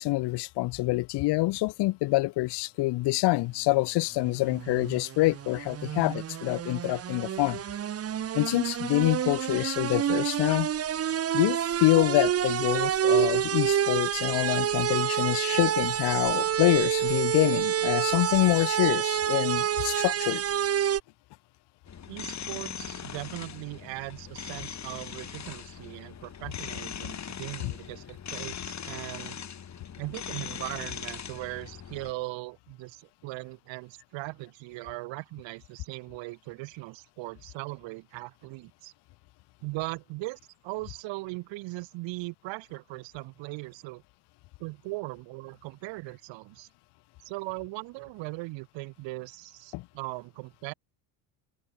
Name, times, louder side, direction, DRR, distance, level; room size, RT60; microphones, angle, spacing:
voice 1, 0.0-7.6 8.3-10.7 11.3-20.4 27.6-27.7 49.7-49.8, left 20 dB, 55° left, 1.2 m, -26 dB
sound 1, 4.3-21.0, right 10 dB, 30° right, 1.1 m, -28 dB
sound 2, 21.9-32.1, left 8 dB, 35° left, 7.1 m, -40 dB
voice 2, 22.1-29.4 30.0-38.9 39.6-44.0 44.6-46.7 47.2-50.7, right 22 dB, 70° right, 6.5 m, -39 dB
open air
supercardioid pair, 105°, 47 cm